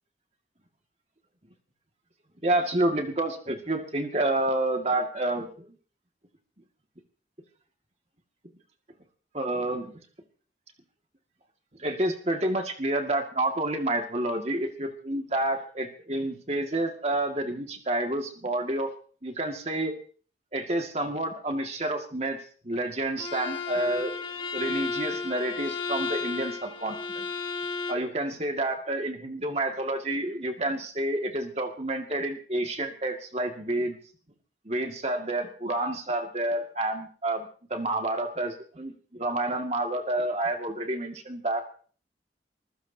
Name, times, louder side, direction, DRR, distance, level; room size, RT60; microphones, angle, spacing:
voice 1, 2.4-5.7 9.3-9.9 11.8-18.9 19.2-20.0 20.5-22.4 22.6-24.1 24.5-27.3 27.9-34.0 34.7-41.6, right 1 dB, 35° right, 3 dB, 2.1 m, -29 dB
Bowed string instrument, 23.2-28.1, left 4 dB, 30° left, 1.8 m, -33 dB
25.5 x 15.0 x 2.9 m, 0.43 s
head